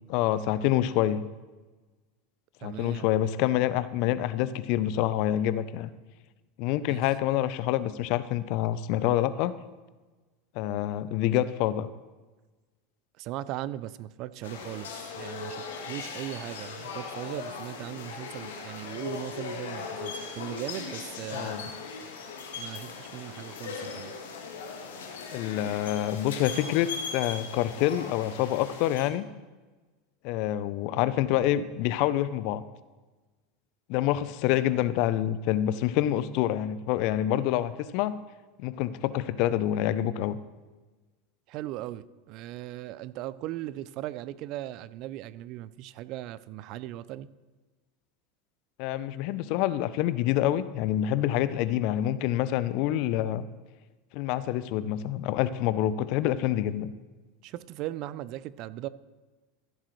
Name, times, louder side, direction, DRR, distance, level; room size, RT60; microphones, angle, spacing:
voice 1, 0.1-1.3 2.6-5.9 6.6-9.5 10.5-11.9 21.3-21.7 25.3-29.3 30.2-32.6 33.9-38.1 38.6-40.4 48.8-53.4 54.1-56.9, left 12 dB, 55° left, 15 dB, 0.5 m, -27 dB
voice 2, 2.6-3.1 6.9-7.0 13.2-21.6 22.5-24.2 41.5-47.3 57.4-58.9, right 14 dB, 50° right, 17 dB, 0.4 m, -38 dB
sound 1, 14.4-29.1, left 5 dB, 75° left, 1.6 m, -39 dB
15.0 x 7.5 x 3.2 m, 1.2 s
hypercardioid pair, 85°, 0 cm